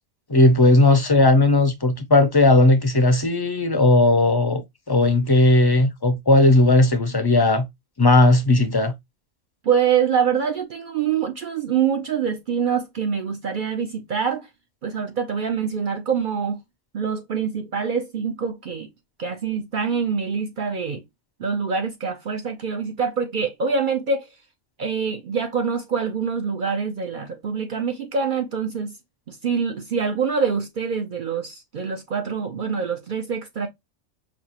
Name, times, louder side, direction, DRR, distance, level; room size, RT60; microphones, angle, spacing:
voice 1, 0.3-4.6 4.9-7.7 8.0-8.9, left 2 dB, 30° left, 0.4 m, -16 dB
voice 2, 9.6-14.5 14.8-16.6 16.9-18.9 19.2-21.0 21.4-24.3 24.8-28.9 29.3-33.7, right 6 dB, 55° right, 0.6 m, -25 dB
5.2 x 2.4 x 2.8 m
omnidirectional pair, 1.3 m